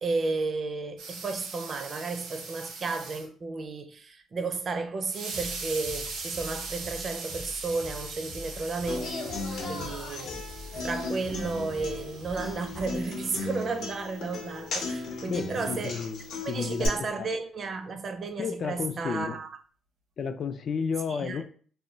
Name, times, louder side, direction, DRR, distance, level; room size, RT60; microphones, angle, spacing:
voice 1, 0.0-9.2 9.6-10.4 10.8-16.0 16.4-19.5 21.2-21.4, right 3 dB, 45° right, 0.4 m, -33 dB
sound 1, 1.0-3.3 5.1-13.4, right 4 dB, 85° right, 0.7 m, -41 dB
sound 2, 5.3-13.1, left 3 dB, 40° left, 0.7 m, -45 dB
Human voice / Acoustic guitar, 8.9-16.9, left 3 dB, 75° left, 0.8 m, -36 dB
voice 2, 15.3-17.3 18.4-19.4 20.2-21.4, left 6 dB, 60° left, 0.3 m, -32 dB
2.2 x 2.0 x 3.8 m
cardioid pair, 90°, 0 cm